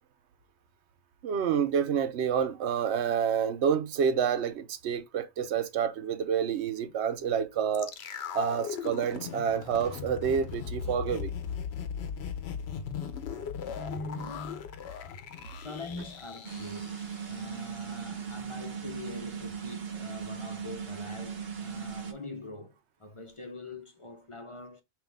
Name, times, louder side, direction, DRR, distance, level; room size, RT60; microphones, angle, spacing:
voice 1, 1.2-7.9 8.3-11.3, right 7 dB, 85° right, 1.0 m, -28 dB
sound 1, 7.7-17.9 18.1-18.2, left 7 dB, 75° left, 1.0 m, -38 dB
voice 2, 13.8-14.8 15.5-17.0 17.3-24.8, left 2 dB, 30° left, 0.8 m, -43 dB
sound 2, 16.4-22.1, right 7 dB, 65° right, 1.2 m, -38 dB
5.9 x 2.6 x 3.4 m
omnidirectional pair, 1.1 m